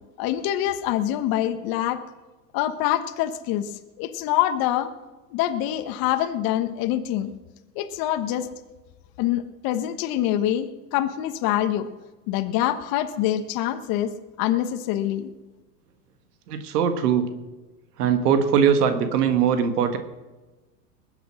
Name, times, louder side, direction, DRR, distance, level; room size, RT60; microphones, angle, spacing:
voice 1, 0.2-2.0 2.5-4.9 5.3-7.3 7.7-8.5 9.2-11.9 12.3-15.3, left 12 dB, 45° left, 9 dB, 1.3 m, -25 dB
voice 2, 16.5-17.3 18.0-20.0, right 7 dB, 70° right, 8 dB, 1.8 m, -21 dB
20.5 x 8.1 x 6.2 m, 1.2 s
hypercardioid pair, 100°, 48 cm